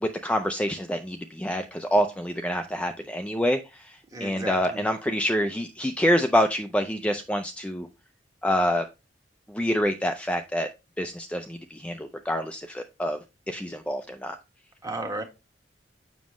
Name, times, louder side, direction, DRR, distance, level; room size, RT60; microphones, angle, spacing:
voice 1, 0.0-7.9 8.4-8.8 9.5-10.7 11.0-13.2 13.5-14.4, equal, 5° left, 0.5 m, -26 dB
voice 2, 4.1-4.8 14.8-15.2, right 2 dB, 20° right, 1.5 m, -34 dB
7.3 x 6.1 x 3.0 m
head